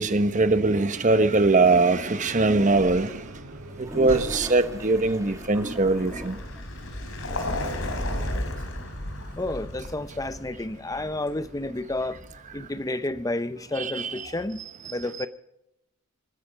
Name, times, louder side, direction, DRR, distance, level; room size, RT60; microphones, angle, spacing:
voice 1, 0.0-3.1 3.8-6.4 13.8-14.1, right 3 dB, 35° right, 1.0 m, -21 dB
sound 1, 1.2-11.0, right 1 dB, 80° right, 2.5 m, -43 dB
Toilet flush, 3.5-6.6, right 1 dB, 15° right, 1.4 m, -39 dB
Vehicle, 3.8-12.6, left 1 dB, 65° left, 3.5 m, -35 dB
voice 2, 9.4-12.2 12.5-15.3, left 2 dB, 15° left, 0.6 m, -31 dB
26.0 x 10.0 x 5.1 m
head